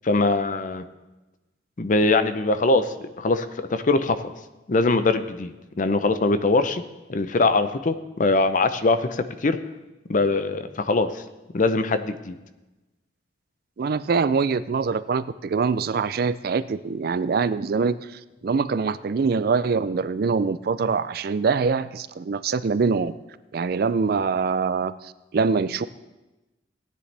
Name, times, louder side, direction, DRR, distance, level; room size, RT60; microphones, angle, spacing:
voice 1, 0.0-0.8 1.8-4.2 4.7-6.8 7.1-9.6 10.1-11.2 11.5-12.4, left 3 dB, 45° left, 11 dB, 0.6 m, -22 dB
voice 2, 13.8-18.0 18.4-23.1 23.5-24.9 25.3-25.9, right 5 dB, 55° right, 15 dB, 0.4 m, -24 dB
17.0 x 9.7 x 3.4 m, 1.1 s
head